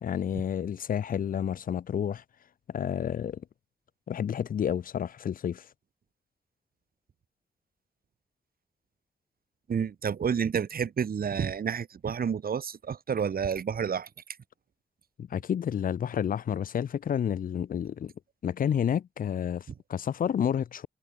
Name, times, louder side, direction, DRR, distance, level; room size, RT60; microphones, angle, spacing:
voice 1, 0.0-2.2 2.7-3.4 4.1-5.7 15.2-18.1 18.4-20.9, left 8 dB, 60° left, 0.5 m, -30 dB
voice 2, 9.7-14.1, right 7 dB, 70° right, 1.4 m, -29 dB
cardioid pair, 65°, 16 cm